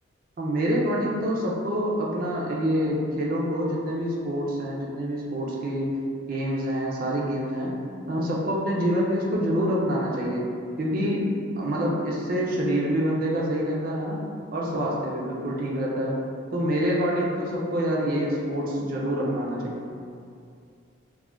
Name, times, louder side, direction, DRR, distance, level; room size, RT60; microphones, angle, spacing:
voice 1, 0.4-5.9 6.3-7.8 8.1-10.4 10.8-11.2 11.6-14.2 14.5-16.2 16.5-20.0, equal, 45° right, -3 dB, 0.4 m, -26 dB
2.4 x 2.1 x 3.2 m, 2.4 s
head